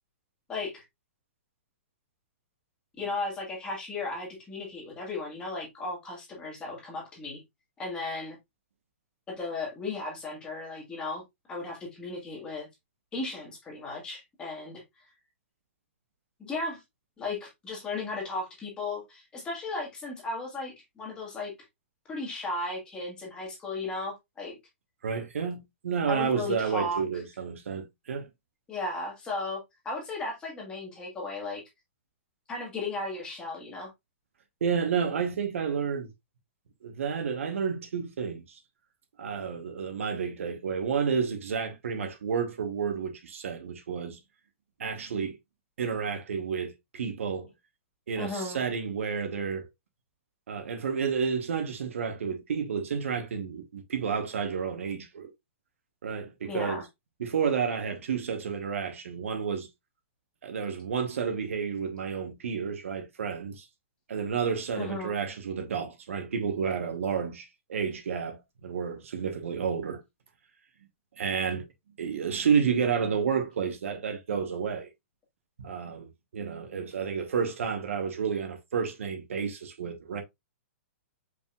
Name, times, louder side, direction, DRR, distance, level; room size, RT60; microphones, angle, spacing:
voice 1, 0.5-0.8 3.0-7.4 7.8-8.4 9.3-11.2 11.5-12.7 13.1-14.8 16.4-16.8 17.2-21.5 22.1-24.6 26.1-27.0 28.7-31.6 32.5-33.9 48.2-48.6 56.5-56.8 64.7-65.1, left 2 dB, 15° left, 1.4 m, -35 dB
voice 2, 25.0-28.3 34.6-36.1 36.8-38.6 39.2-44.2 44.8-45.4 45.8-47.5 48.1-49.7 50.5-55.3 56.0-56.8 57.2-59.7 60.4-63.7 64.1-70.0 71.2-71.6 72.0-74.9 75.6-80.2, right 6 dB, 80° right, 1.1 m, -30 dB
4.9 x 3.6 x 2.3 m
hypercardioid pair, 165°, 7 cm